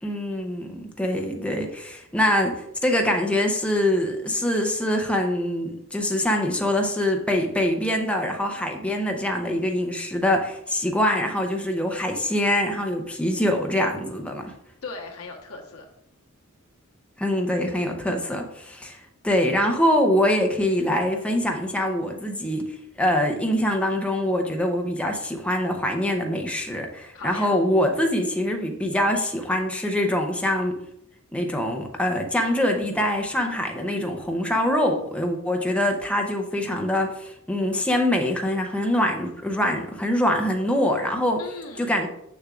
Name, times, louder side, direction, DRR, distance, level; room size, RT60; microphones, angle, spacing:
voice 1, 0.0-14.5 17.2-30.8 31.3-41.4 41.8-42.1, left 1 dB, 5° left, 2 dB, 0.6 m, -24 dB
voice 2, 14.8-15.9 27.1-27.6 41.4-42.0, left 4 dB, 80° left, 1 dB, 1.1 m, -38 dB
7.1 x 6.6 x 2.4 m, 0.77 s
head